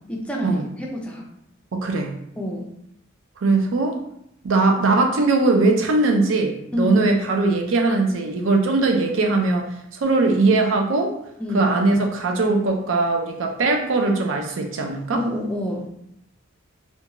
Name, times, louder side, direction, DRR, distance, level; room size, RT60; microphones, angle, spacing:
voice 1, 0.1-1.3 2.4-2.7 6.7-7.1 11.4-11.7 15.1-15.9, equal, 5° left, -1 dB, 0.4 m, -27 dB
voice 2, 1.7-2.1 3.4-3.9 4.4-9.6 9.9-11.1 11.5-15.2, right 3 dB, 70° right, 2 dB, 0.4 m, -20 dB
2.5 x 2.2 x 2.8 m, 0.77 s
head